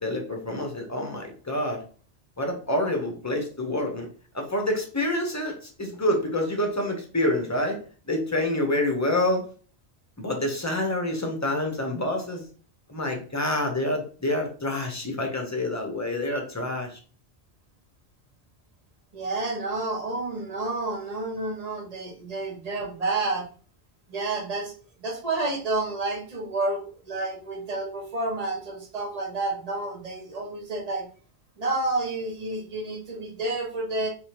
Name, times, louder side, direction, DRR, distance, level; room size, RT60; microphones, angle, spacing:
voice 1, 0.0-1.8 2.4-4.1 4.3-7.8 8.0-9.4 10.2-12.4 12.9-17.0, left 1 dB, 15° left, 2 dB, 0.8 m, -27 dB
voice 2, 19.1-23.5 24.1-24.7 25.0-31.1 31.6-34.1, right 2 dB, 40° right, 2 dB, 1.0 m, -30 dB
3.4 x 3.4 x 2.9 m, 0.40 s
omnidirectional pair, 1.1 m